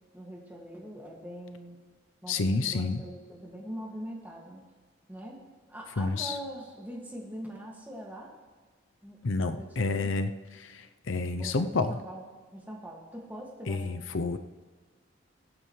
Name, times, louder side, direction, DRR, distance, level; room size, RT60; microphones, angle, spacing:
voice 1, 0.1-1.8 2.2-4.6 5.1-5.4 5.7-8.3 9.0-10.1 11.4-11.5 11.9-12.2 12.5-13.9, equal, 10° right, -2 dB, 2.1 m, -42 dB
voice 2, 2.3-3.0 6.0-6.4 9.2-12.0 13.7-14.4, left 3 dB, 75° left, 8 dB, 0.7 m, -29 dB
23.5 x 9.0 x 3.3 m, 1.4 s
head